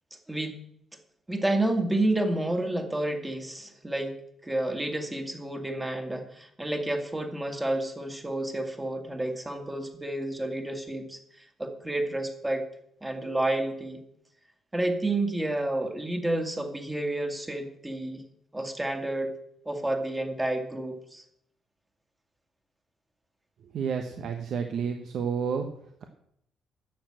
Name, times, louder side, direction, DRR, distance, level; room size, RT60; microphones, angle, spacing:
voice 1, 1.3-4.2 4.4-12.7 13.0-14.0 14.7-18.2 18.5-19.3 19.7-21.2, right 1 dB, 10° right, 5 dB, 2.0 m, -30 dB
voice 2, 23.7-25.7, right 6 dB, 65° right, 5 dB, 1.1 m, -30 dB
10.5 x 7.0 x 7.6 m, 0.73 s
cardioid pair, 90°, 0 cm